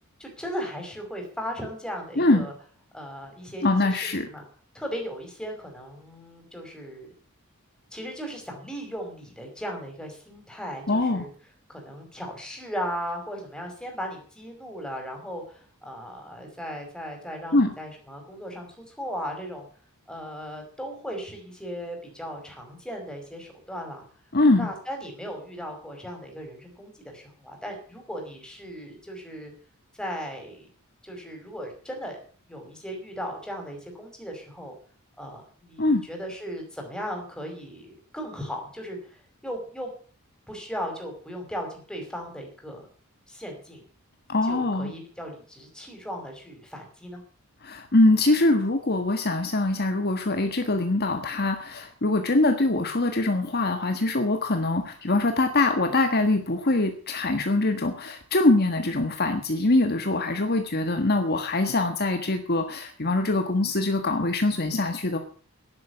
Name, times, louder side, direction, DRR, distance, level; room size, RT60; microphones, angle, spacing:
voice 1, 0.2-2.5 2.9-4.4 4.7-7.1 7.9-11.3 11.7-19.7 20.1-24.0 24.6-29.5 30.0-30.7 31.0-32.2 32.5-34.7 35.2-39.9 40.5-42.9 43.3-43.8 44.4-47.2, equal, 5° left, 2 dB, 5.4 m, -37 dB
voice 2, 2.2-2.5 3.6-4.3 10.9-11.2 17.5-17.7 24.3-24.7 35.8-36.0 44.3-44.9 47.6-65.2, left 2 dB, 45° left, 6 dB, 1.6 m, -23 dB
11.5 x 11.0 x 8.1 m, 0.43 s
head